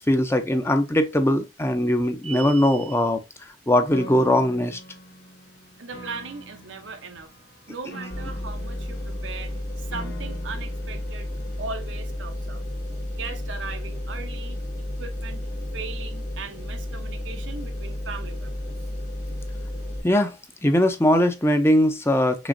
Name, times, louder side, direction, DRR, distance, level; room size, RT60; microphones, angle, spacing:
voice 1, 0.0-3.2 3.7-4.8 20.0-20.4 20.6-22.5, left 1 dB, 15° left, 0.6 m, -20 dB
sound 1, 2.2-3.1, right 5 dB, 35° right, 0.4 m, -36 dB
Piano, 3.9-11.9, equal, 65° left, 1.1 m, -44 dB
voice 2, 5.8-7.3 7.7-11.3 11.6-12.6 13.1-14.6 15.0-15.5 15.7-18.8, right 4 dB, 80° right, 0.9 m, -38 dB
sound 2, 8.1-20.0, left 1 dB, 40° left, 1.1 m, -32 dB
6.2 x 3.0 x 2.6 m
head